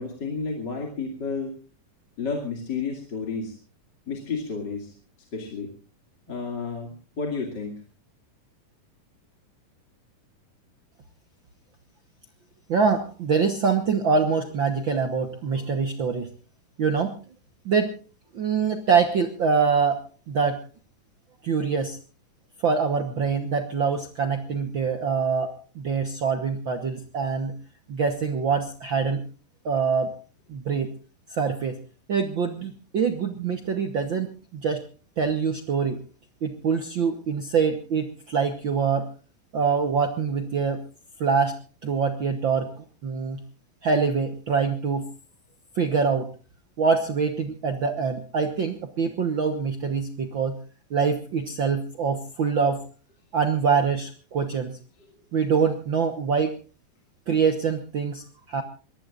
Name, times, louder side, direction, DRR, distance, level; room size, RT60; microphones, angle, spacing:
voice 1, 0.0-1.6 2.2-3.5 4.1-4.9 5.3-5.7 6.3-7.8, left 4 dB, 35° left, 1 dB, 2.7 m, -31 dB
voice 2, 12.7-16.3 16.8-17.1 17.6-18.0 18.3-20.6 21.4-22.0 22.6-27.5 27.9-29.2 29.6-30.1 30.5-30.9 31.3-31.8 32.1-34.8 35.2-36.0 36.4-39.1 39.5-40.8 41.2-41.6 41.8-42.7 43.0-43.4 43.8-45.1 45.8-46.3 46.8-50.6 50.9-52.8 53.3-54.8 55.3-56.6 57.3-58.6, right 5 dB, 75° right, 6 dB, 1.1 m, -24 dB
24.5 x 19.0 x 2.5 m, 0.35 s
omnidirectional pair, 4.1 m